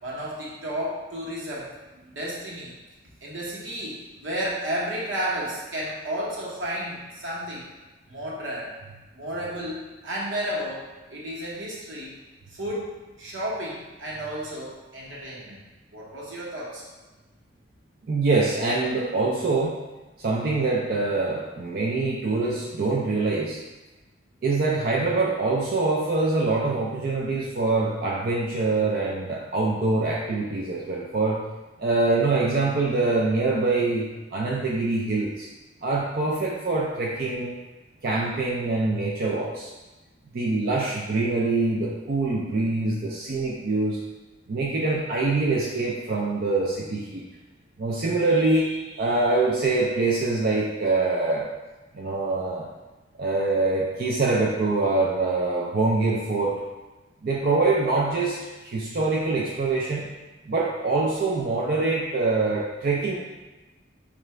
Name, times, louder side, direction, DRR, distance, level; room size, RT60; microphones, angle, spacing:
voice 1, 0.0-1.7 2.1-2.7 3.2-7.7 8.1-8.7 9.1-12.2 12.5-15.6 15.9-16.8, equal, 85° right, -5 dB, 1.1 m, -32 dB
voice 2, 18.1-19.8 20.2-23.6 24.4-31.4 31.8-35.5 35.8-37.6 38.0-39.7 40.3-44.0 44.5-47.2 47.8-51.5 51.9-52.6 53.2-56.6 57.2-58.4 58.6-60.0 60.5-63.1, right 3 dB, 50° right, -4 dB, 0.4 m, -24 dB
4.6 x 2.5 x 3.2 m, 1.1 s
head